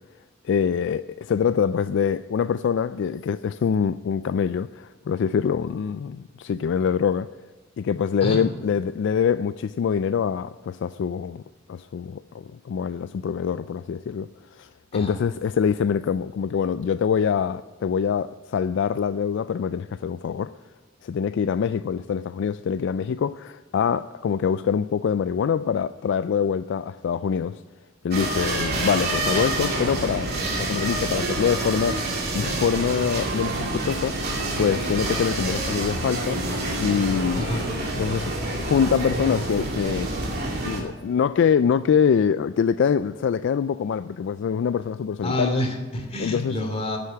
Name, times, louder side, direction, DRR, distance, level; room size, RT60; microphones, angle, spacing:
voice 1, 0.4-7.3 7.8-11.4 11.7-20.5 21.0-27.6 28.0-30.3 30.6-32.0 32.3-34.2 34.6-36.4 36.8-37.6 38.0-40.2 40.6-45.6 46.2-46.6, left 7 dB, 65° left, 0.3 m, -24 dB
sound 1, 28.1-40.8, right 2 dB, 55° right, 2.7 m, -27 dB
voice 2, 37.3-37.6 45.2-47.0, left 1 dB, 30° left, 2.8 m, -28 dB
10.5 x 8.2 x 9.5 m
head